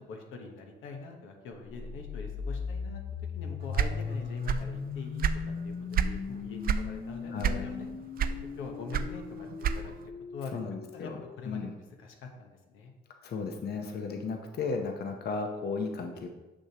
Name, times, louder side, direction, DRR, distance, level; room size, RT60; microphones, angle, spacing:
voice 1, 0.0-3.0 3.3-5.3 5.6-7.9 8.2-10.6 10.9-11.1 11.4-11.7 12.0-12.9, left 4 dB, 90° left, 3 dB, 1.0 m, -44 dB
sound 1, 1.7-11.6, left 5 dB, 25° left, 0.3 m, -38 dB
sound 2, 3.7-4.8 5.0-6.2 6.6-6.9 7.4-7.8 8.2-10.1, right 8 dB, 50° right, 0.4 m, -28 dB
voice 2, 7.3-7.7 10.5-11.2 11.5-11.8 13.2-16.3, left 4 dB, 55° left, 3 dB, 0.7 m, -35 dB
6.2 x 6.2 x 2.8 m, 1.1 s
cardioid pair, 90°, 20 cm